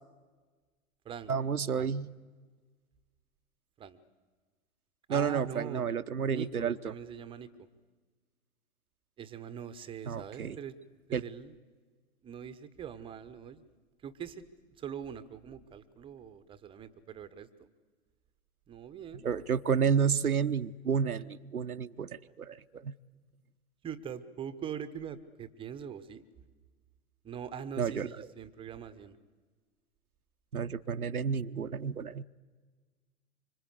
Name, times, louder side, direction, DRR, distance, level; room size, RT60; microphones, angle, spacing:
voice 1, 1.3-2.1 5.1-6.7 10.1-10.6 11.1-11.2 19.2-22.9 27.8-28.1 30.5-32.2, right 6 dB, 80° right, 9 dB, 0.8 m, -30 dB
voice 2, 5.1-5.9 6.3-7.7 9.2-10.8 11.1-11.6 12.2-13.7 14.0-17.7 18.7-19.2 23.8-26.2 27.2-29.2, right 8 dB, 10° right, 14 dB, 0.8 m, -43 dB
25.5 x 25.0 x 8.3 m, 1.4 s
figure-of-eight pair, 110°, 44 cm